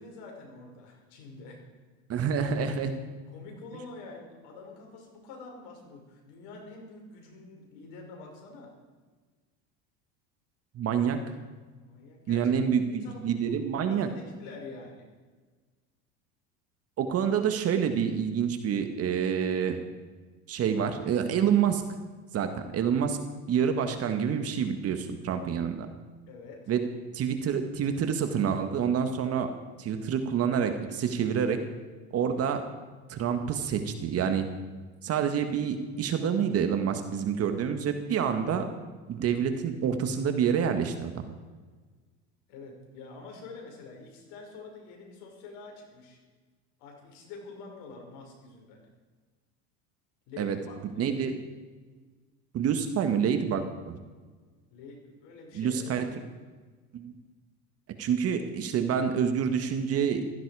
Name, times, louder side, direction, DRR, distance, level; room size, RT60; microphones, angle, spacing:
voice 1, 0.0-1.6 3.3-8.7 11.8-12.5 12.9-15.1 26.3-26.7 42.5-46.2 46.8-48.8 50.3-51.2 54.7-55.9, left 3 dB, 70° left, 1 dB, 5.7 m, -46 dB
voice 2, 2.1-2.9 10.8-11.2 12.3-14.1 17.0-19.8 20.5-21.8 22.3-23.2 23.5-25.9 26.7-26.8 27.1-29.5 29.8-31.6 32.1-32.6 33.1-34.5 35.0-38.6 39.1-41.2 50.4-50.6 51.0-51.3 52.5-54.0 55.6-56.1 56.9-57.1 58.0-60.3, right 7 dB, 45° right, 7 dB, 1.8 m, -27 dB
16.0 x 15.0 x 5.0 m, 1.4 s
supercardioid pair, 110°, 34 cm